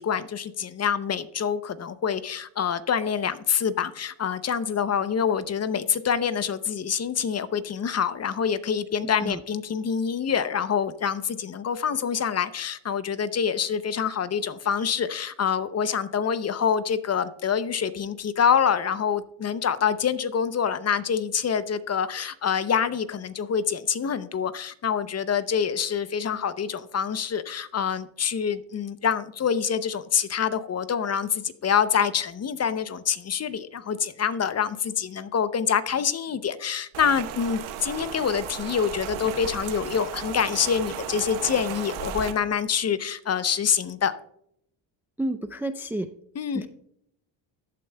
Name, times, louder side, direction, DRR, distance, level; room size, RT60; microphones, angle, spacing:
voice 1, 0.0-44.1 46.4-46.7, left 7 dB, 30° left, 14 dB, 0.6 m, -26 dB
Rain, 36.9-42.3, right 9 dB, 75° right, 1.3 m, -35 dB
voice 2, 45.2-46.1 46.5-46.7, right 1 dB, 5° right, 9 dB, 0.4 m, -30 dB
14.5 x 8.8 x 2.2 m, 0.72 s
cardioid pair, 90°, 49 cm